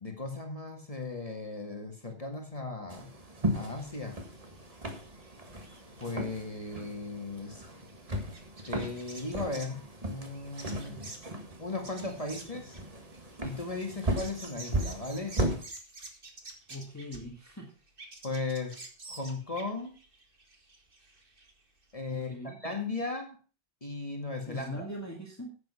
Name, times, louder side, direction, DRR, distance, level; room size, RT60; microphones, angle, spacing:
voice 1, 0.0-3.1 3.5-4.2 6.0-7.6 8.7-11.0 11.6-12.8 13.4-15.4 18.2-18.8 19.1-19.9 21.9-23.4 23.8-24.9, left 3 dB, 35° left, 3 dB, 2.1 m, -37 dB
sound 1, 2.9-15.6, right 1 dB, 35° right, 1.8 m, -36 dB
sound 2, 3.5-9.8 10.3-17.6 17.9-21.5 21.8-21.9 22.1-22.2, right 2 dB, 55° right, 2.1 m, -49 dB
voice 2, 16.7-17.7 22.1-22.6 24.5-25.6, equal, 15° left, 1 dB, 1.7 m, -41 dB
10.0 x 8.5 x 5.7 m, 0.37 s
omnidirectional pair, 1.1 m